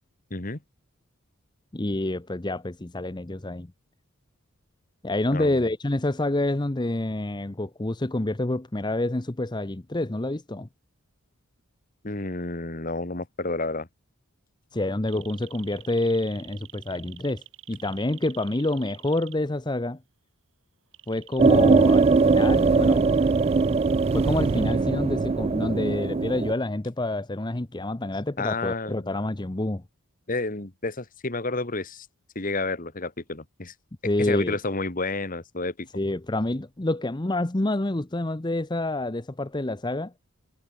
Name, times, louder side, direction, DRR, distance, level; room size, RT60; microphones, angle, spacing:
voice 1, 1.7-3.7 5.0-10.7 14.7-20.0 21.1-23.1 24.1-29.8 34.0-34.6 35.9-40.1, left 1 dB, 20° left, 0.8 m, -28 dB
voice 2, 12.0-13.9 28.4-29.1 30.3-32.1 32.4-33.7 34.2-35.9, left 3 dB, 40° left, 1.8 m, -30 dB
sound 1, 15.1-19.3 20.9-24.7, right 14 dB, 60° right, 5.8 m, -46 dB
sound 2, 21.4-26.5, right 4 dB, 30° right, 0.3 m, -20 dB
head